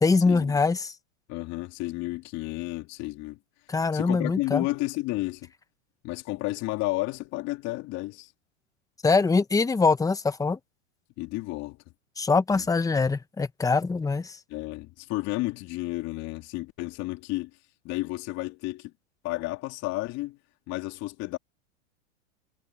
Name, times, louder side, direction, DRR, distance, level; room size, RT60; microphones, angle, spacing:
voice 1, 0.0-0.9 3.7-4.6 9.0-10.6 12.2-14.4, left 4 dB, 10° left, 1.2 m, -23 dB
voice 2, 1.3-3.4 3.9-5.5 6.0-8.3 11.2-11.8 12.5-12.6 14.5-17.5 17.8-18.9 19.2-20.4 20.7-21.4, left 20 dB, 50° left, 3.2 m, -32 dB
hypercardioid pair, 115°, 35 cm